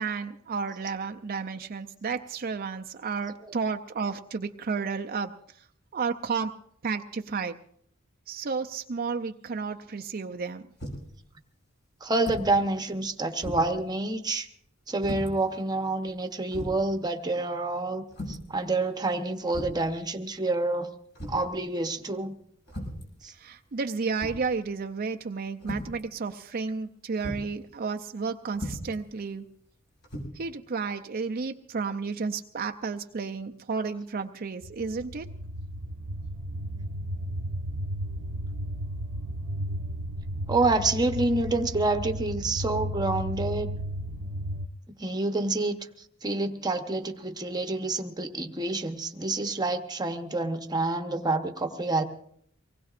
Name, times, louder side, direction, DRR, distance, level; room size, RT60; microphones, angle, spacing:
voice 1, 0.0-5.6 5.9-6.5 6.8-7.6 8.3-10.7 23.3-29.4 30.3-35.3, right 5 dB, 45° right, 5 dB, 0.5 m, -32 dB
sound 1, 10.8-11.1 12.2-12.5 12.9-13.0 13.4-13.8 15.0-15.3 16.1-16.2 16.5-16.8 18.1-18.5 19.5-19.9 21.1-21.5 22.7-23.1 24.2-24.5 25.6-26.0 27.2-27.5 28.5-29.0 30.0-30.2, equal, 55° left, 6.0 m, -36 dB
voice 2, 12.0-14.5 14.9-20.9 21.3-22.3 23.2-23.3 40.5-43.7 45.0-45.8 46.2-52.0, right 2 dB, 20° right, 5 dB, 1.0 m, -28 dB
sound 2, 34.6-44.7, equal, 80° right, 0.8 m, -34 dB
24.5 x 19.5 x 2.5 m, 0.67 s
head